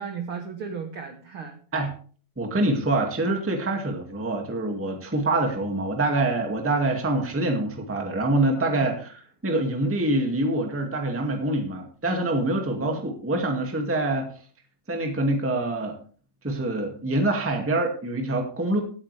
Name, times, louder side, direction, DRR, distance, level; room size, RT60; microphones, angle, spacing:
voice 1, 0.0-1.6 8.7-8.9 12.8-12.9 17.2-17.6, right 6 dB, 70° right, 5 dB, 1.2 m, -36 dB
voice 2, 2.3-14.3 14.9-16.0 16.4-18.8, right 2 dB, 5° right, 3 dB, 1.0 m, -25 dB
17.5 x 8.9 x 3.4 m, 0.42 s
omnidirectional pair, 4.3 m